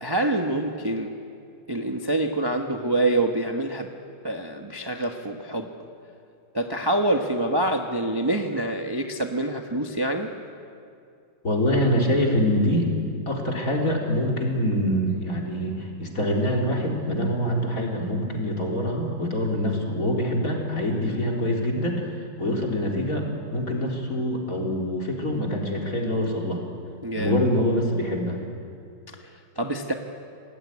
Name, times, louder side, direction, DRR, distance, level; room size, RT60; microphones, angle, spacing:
voice 1, 0.0-1.1 1.7-3.9 4.2-5.7 6.5-10.3 27.0-27.4 29.2-29.9, right 1 dB, 15° right, 3 dB, 1.0 m, -26 dB
voice 2, 11.4-12.9 13.3-22.1 22.4-26.6 27.2-28.4, equal, 45° left, -1 dB, 4.0 m, -25 dB
25.0 x 18.5 x 9.7 m, 2.4 s
omnidirectional pair, 2.1 m